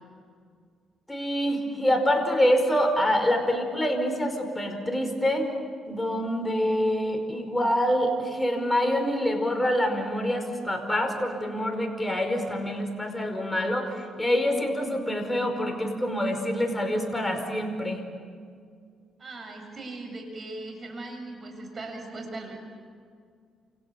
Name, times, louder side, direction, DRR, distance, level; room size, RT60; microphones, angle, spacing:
voice 1, 1.1-5.5 5.8-18.0, equal, 10° left, 4 dB, 5.1 m, -26 dB
voice 2, 19.2-22.5, right 2 dB, 35° right, 3 dB, 7.7 m, -39 dB
29.0 x 28.0 x 7.1 m, 2.1 s
cardioid pair, 90°, 0 cm